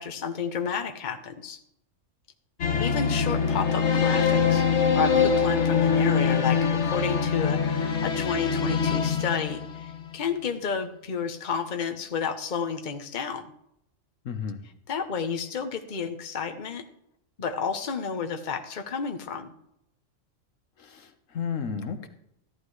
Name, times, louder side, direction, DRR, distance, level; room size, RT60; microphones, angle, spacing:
voice 1, 0.0-1.6 2.8-4.7 4.9-13.5 14.9-16.8 17.4-19.5, left 6 dB, 40° left, 6 dB, 1.0 m, -31 dB
sound 1, 2.6-10.1, left 6 dB, 60° left, 1.3 m, -24 dB
voice 2, 14.2-14.6 20.8-22.1, left 6 dB, 75° left, 8 dB, 1.4 m, -33 dB
14.5 x 11.5 x 3.2 m, 0.77 s
omnidirectional pair, 1.3 m